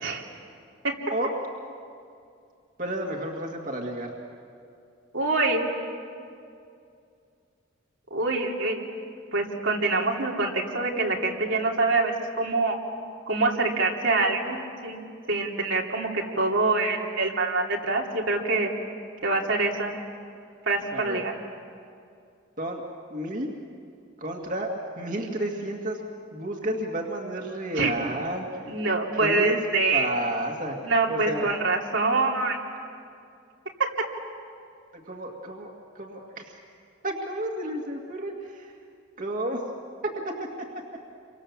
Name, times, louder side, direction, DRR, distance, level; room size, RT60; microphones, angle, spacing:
voice 1, 2.8-4.1 20.9-21.3 22.6-22.8 23.1-23.5 24.2-24.7 25.0-26.0 26.3-28.7 29.1-29.6 29.9-30.8 31.1-31.5 34.9-36.5 37.0-38.7 39.2-39.6 40.2-40.5, right 1 dB, 40° right, 0 dB, 2.2 m, -31 dB
voice 2, 5.1-5.6 8.1-8.8 9.3-12.8 13.3-15.0 15.3-18.7 19.2-19.9 20.7-21.3 27.7-27.9 28.7-30.1 30.8-32.6, right 3 dB, 75° right, -1 dB, 3.1 m, -25 dB
29.5 x 24.5 x 7.4 m, 2.4 s
head